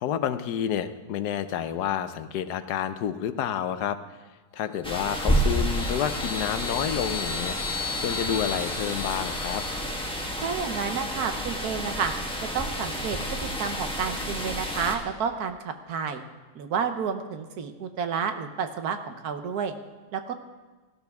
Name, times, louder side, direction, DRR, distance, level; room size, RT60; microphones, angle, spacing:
voice 1, 0.0-4.0 4.5-7.6 8.0-9.6, left 9 dB, 80° left, 11 dB, 1.2 m, -29 dB
sound 1, 4.8-14.9, equal, 5° left, 1.2 m, -30 dB
sound 2, 5.0-10.5, left 5 dB, 55° left, 0.8 m, -36 dB
voice 2, 10.4-12.1 12.5-16.2 16.5-19.7 20.1-20.3, right 6 dB, 70° right, 8 dB, 1.3 m, -30 dB
15.5 x 12.0 x 3.5 m, 1.3 s
omnidirectional pair, 1.7 m